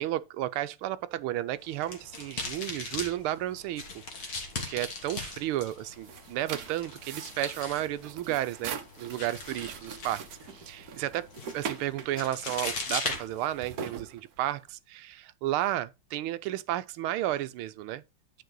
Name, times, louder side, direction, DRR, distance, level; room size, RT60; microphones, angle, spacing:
voice 1, 0.0-3.8 4.2-4.4 4.7-10.2 10.5-11.3 11.5-18.0, right 14 dB, 85° right, 1.5 m, -32 dB
sound 1, 1.6-13.9, left 3 dB, 50° left, 1.8 m, -40 dB
sound 2, 5.6-14.7, right 7 dB, 60° right, 1.1 m, -42 dB
9.2 x 4.7 x 3.8 m
omnidirectional pair, 2.3 m